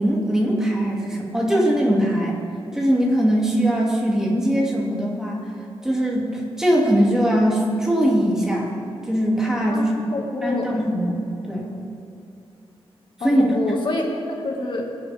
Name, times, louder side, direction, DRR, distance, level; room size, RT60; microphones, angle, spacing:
voice 1, 0.0-2.4 2.7-5.5 5.8-8.7 9.1-9.9 10.4-11.7 13.2-13.5, equal, 5° right, -3 dB, 2.4 m, -21 dB
voice 2, 9.7-10.7 13.2-14.1 14.4-14.9, left 2 dB, 50° left, 0 dB, 1.9 m, -27 dB
22.5 x 7.8 x 3.5 m, 2.7 s
wide cardioid pair, 125°, 10 cm